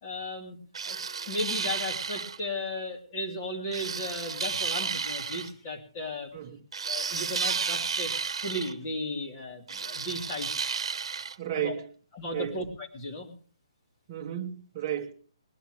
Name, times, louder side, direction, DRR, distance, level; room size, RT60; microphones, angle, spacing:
voice 1, 0.0-0.6 0.8-1.0 1.2-6.3 6.9-8.1 8.4-10.7 11.5-11.7 12.1-13.3, left 1 dB, 20° left, 2.8 m, -35 dB
sound 1, 0.8-2.4 3.7-5.5 6.7-8.7 9.7-11.4, right 5 dB, 70° right, 1.1 m, -32 dB
voice 2, 11.4-11.9 12.3-12.6 14.1-15.1, right 11 dB, 20° right, 1.4 m, -33 dB
21.0 x 11.0 x 3.3 m
hypercardioid pair, 175°, 3 cm